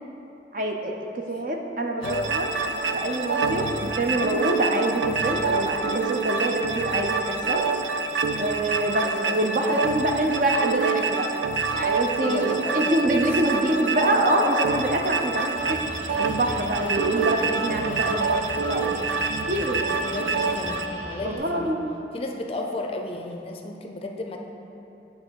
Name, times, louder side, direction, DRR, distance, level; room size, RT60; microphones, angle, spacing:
voice 1, 0.5-2.5 2.9-7.6 8.4-11.3 11.7-15.8 16.2-19.1 19.5-19.8 21.2-21.9, right 1 dB, 45° right, 2 dB, 0.6 m, -25 dB
voice 2, 2.0-2.5 9.0-9.5 12.2-13.0 13.5-13.6 20.0-21.7 22.1-24.4, left 2 dB, 30° left, 3 dB, 0.5 m, -33 dB
sound 1, 2.0-20.9, right 4 dB, 90° right, 0.5 m, -27 dB
sound 2, 15.5-21.4, equal, 10° right, 0.9 m, -40 dB
9.2 x 3.4 x 6.3 m, 3.0 s
head